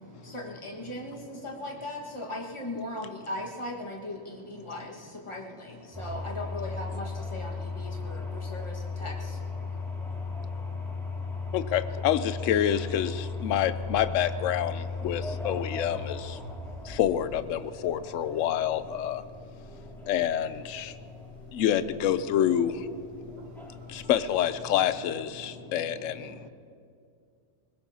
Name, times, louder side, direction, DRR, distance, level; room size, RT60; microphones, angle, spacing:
voice 1, 0.2-9.4, left 1 dB, 20° left, -1 dB, 1.6 m, -38 dB
sound 1, 5.9-24.9, left 3 dB, ahead, 2.3 m, -37 dB
voice 2, 11.5-16.4 16.8-19.2 19.8-21.0 21.5-22.9 23.2-23.3 23.7-26.4, left 10 dB, 65° left, 13 dB, 0.8 m, -28 dB
voice 3, 25.4-26.0 26.4-26.5, right 4 dB, 30° right, 7 dB, 0.5 m, -47 dB
22.0 x 19.0 x 2.8 m, 2.3 s
omnidirectional pair, 1.6 m